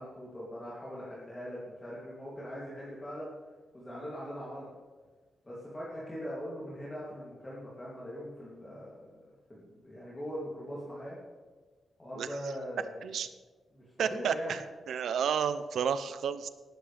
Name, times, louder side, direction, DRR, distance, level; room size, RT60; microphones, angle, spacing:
voice 1, 0.0-3.3 3.7-4.7 5.4-11.2 12.0-13.1 13.7-14.5, equal, 15° left, -8 dB, 3.0 m, -41 dB
voice 2, 14.0-14.6 14.9-16.5, right 7 dB, 75° right, 12 dB, 0.7 m, -31 dB
19.5 x 10.5 x 3.5 m, 1.4 s
wide cardioid pair, 135°, 0 cm